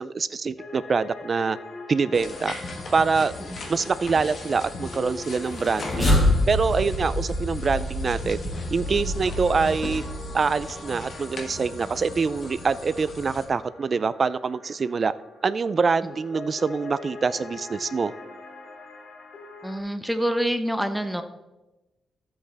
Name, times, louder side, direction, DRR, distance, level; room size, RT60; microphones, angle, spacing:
voice 1, 0.0-1.6 1.9-2.6 2.9-3.3 3.7-6.2 6.5-8.4 8.7-10.0 10.3-15.1 15.4-18.1, right 5 dB, 35° right, 15 dB, 0.3 m, -25 dB
sound 1, 0.6-19.8, left 3 dB, 65° left, 2.4 m, -43 dB
sound 2, 2.1-13.5, left 2 dB, 45° left, 1.5 m, -38 dB
sound 3, 5.4-10.7, left 1 dB, 20° left, 2.4 m, -26 dB
voice 2, 19.6-21.2, equal, ahead, 8 dB, 0.7 m, -26 dB
13.0 x 8.0 x 3.4 m, 1.1 s
wide cardioid pair, 150°, 0 cm